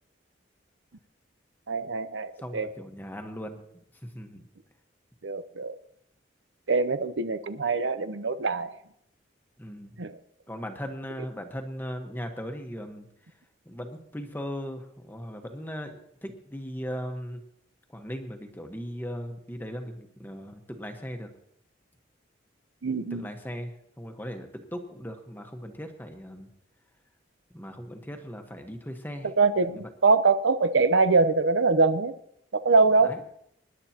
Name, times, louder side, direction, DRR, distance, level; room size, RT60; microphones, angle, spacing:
voice 1, 1.7-2.7 5.2-5.7 6.7-8.8 10.0-10.2 22.8-23.3 29.4-32.1 32.5-33.1, right 4 dB, 85° right, 11 dB, 0.8 m, -23 dB
voice 2, 2.4-3.6 4.0-4.4 9.6-10.0 10.5-13.1 13.6-17.4 17.9-21.3 23.1-26.5 27.5-29.3 29.7-29.8 33.0-33.2, equal, 10° left, 4 dB, 1.2 m, -38 dB
25.0 x 11.0 x 2.9 m, 0.76 s
head